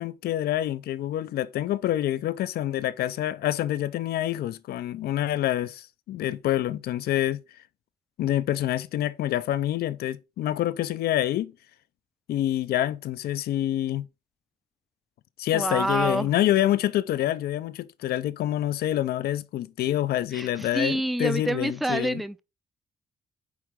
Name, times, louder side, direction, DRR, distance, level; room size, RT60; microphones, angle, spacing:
voice 1, 0.0-7.4 8.2-11.5 12.3-14.1 15.4-22.2, left 13 dB, 90° left, 0.5 m, -27 dB
voice 2, 15.5-16.3 20.3-22.4, right 1 dB, ahead, 0.5 m, -27 dB
9.6 x 3.9 x 3.6 m
cardioid pair, 70°, 16 cm